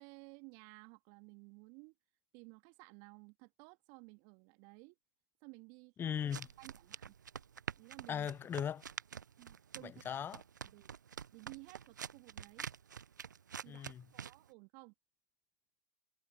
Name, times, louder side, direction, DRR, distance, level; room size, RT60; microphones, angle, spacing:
voice 1, 0.0-1.9 2.3-5.0 5.4-6.2 6.6-7.2 7.8-8.3 9.4-10.0 10.6-10.9 11.3-12.7 13.6-14.9, right 32 dB, 45° right, 1.8 m, -56 dB
voice 2, 6.0-6.5 8.1-8.8 9.8-10.4 13.7-14.1, left 8 dB, 20° left, 0.7 m, -38 dB
sound 1, 6.1-14.5, right 7 dB, 80° right, 0.6 m, -48 dB
figure-of-eight pair, 100°, 10 cm